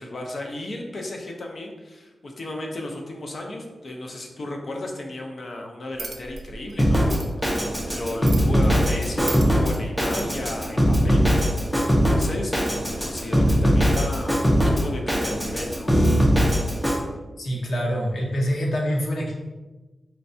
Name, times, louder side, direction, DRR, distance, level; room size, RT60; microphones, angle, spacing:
voice 1, 0.0-11.5 12.1-12.5 12.9-16.0, left 1 dB, 50° left, 1 dB, 0.6 m, -34 dB
sound 1, 5.9-10.5, right 4 dB, 55° right, 0.4 m, -39 dB
Drum kit, 6.8-17.0, equal, 5° left, 0.6 m, -21 dB
voice 2, 17.4-19.3, equal, 75° left, -2 dB, 0.9 m, -25 dB
4.5 x 3.2 x 2.7 m, 1.2 s
wide cardioid pair, 135°, 0 cm